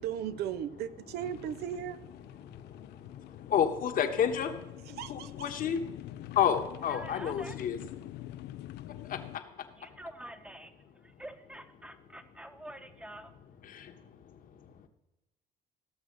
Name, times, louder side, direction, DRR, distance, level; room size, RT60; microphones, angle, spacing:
voice 1, 0.0-2.0 4.9-5.5, right 10 dB, 70° right, 13 dB, 0.6 m, -36 dB
sound 1, 1.2-9.4, left 14 dB, 80° left, 0.4 m, -46 dB
voice 2, 2.4-10.0 13.6-14.9, left 8 dB, 55° left, 7 dB, 1.3 m, -33 dB
voice 3, 6.9-7.7 9.8-13.3, right 1 dB, 5° right, 8 dB, 1.0 m, -47 dB
16.5 x 6.3 x 6.7 m, 0.96 s
cardioid pair, 110°, 17 cm